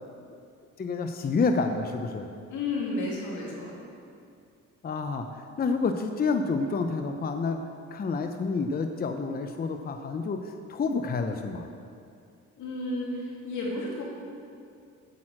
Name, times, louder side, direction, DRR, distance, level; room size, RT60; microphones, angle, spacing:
voice 1, 0.8-2.3 4.8-7.6 7.9-11.7, left 4 dB, 30° left, 6 dB, 0.6 m, -29 dB
voice 2, 2.5-3.8 12.6-14.0, left 2 dB, 80° left, -4 dB, 2.7 m, -32 dB
8.9 x 6.2 x 7.4 m, 2.5 s
cardioid pair, 90°, 30 cm